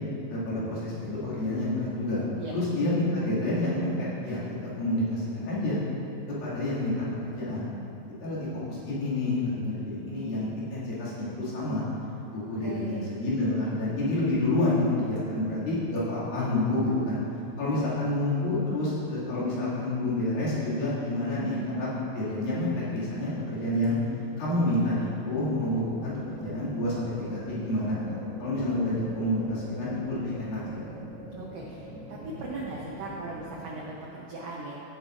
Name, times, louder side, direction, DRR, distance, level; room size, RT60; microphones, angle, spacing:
voice 1, 0.3-2.2 2.5-4.4 4.8-5.8 6.4-6.9 7.2-7.7 8.2-11.8 12.3-17.2 17.6-24.0 24.4-30.6, left 1 dB, 75° left, -9 dB, 4.1 m, -28 dB
voice 2, 12.6-13.1 31.4-34.8, right 2 dB, 80° right, -3 dB, 1.4 m, -38 dB
sound 1, 25.3-33.7, right 1 dB, 5° left, 0.8 m, -43 dB
16.0 x 8.1 x 2.6 m, 2.7 s
omnidirectional pair, 4.2 m